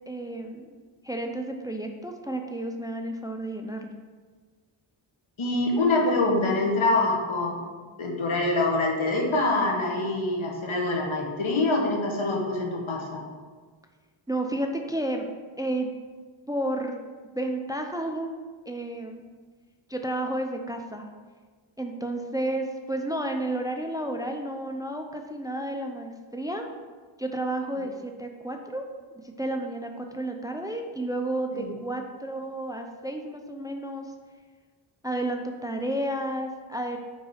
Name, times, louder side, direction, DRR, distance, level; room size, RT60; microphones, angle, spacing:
voice 1, 0.1-0.7 1.0-3.9 14.3-15.3 15.6-15.9 16.5-17.0 17.3-18.3 18.7-19.2 19.9-21.1 21.8-26.7 27.2-28.8 29.2-34.1 35.0-37.0, right 1 dB, 10° right, 4 dB, 0.5 m, -31 dB
voice 2, 5.4-7.6 8.0-13.2 31.5-31.7, left 2 dB, 75° left, 0 dB, 1.3 m, -25 dB
4.7 x 4.1 x 5.7 m, 1.5 s
wide cardioid pair, 60°, 48 cm